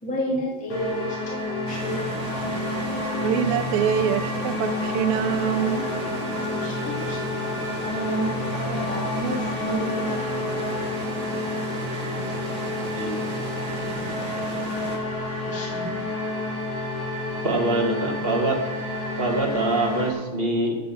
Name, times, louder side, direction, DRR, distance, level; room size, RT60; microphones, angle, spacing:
voice 1, 0.0-2.5 6.5-7.3 7.9-10.1 15.5-16.0, right 1 dB, 5° left, -3 dB, 1.8 m, -31 dB
sound 1, 0.7-20.1, left 2 dB, 45° left, 3.6 m, -29 dB
sound 2, 1.7-15.0, right 4 dB, 50° right, 1.7 m, -36 dB
voice 2, 3.2-5.9, right 10 dB, 90° right, 10 dB, 2.6 m, -25 dB
voice 3, 12.8-13.1 17.4-18.6 19.2-20.8, right 2 dB, 25° right, 0 dB, 1.2 m, -24 dB
14.0 x 7.6 x 7.2 m, 1.2 s
omnidirectional pair, 4.1 m